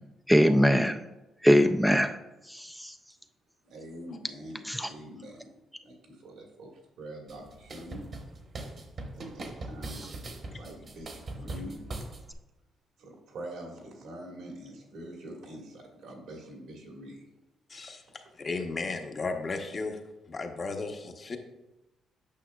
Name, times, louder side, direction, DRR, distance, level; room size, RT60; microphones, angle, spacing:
voice 1, 0.3-1.0 1.4-2.2 2.5-2.9 4.6-4.9, equal, ahead, 6 dB, 0.3 m, -22 dB
voice 2, 3.6-5.5 5.8-6.7 7.0-8.1 9.1-11.8 13.0-17.2, right 1 dB, 80° right, 0 dB, 1.8 m, -45 dB
sound 1, 7.3-12.3, right 2 dB, 45° right, 1.1 m, -41 dB
voice 3, 17.7-18.0 18.4-20.0 20.3-21.4, left 3 dB, 40° left, 4 dB, 0.9 m, -34 dB
8.6 x 6.0 x 2.3 m, 1.0 s
cardioid pair, 90°, 0 cm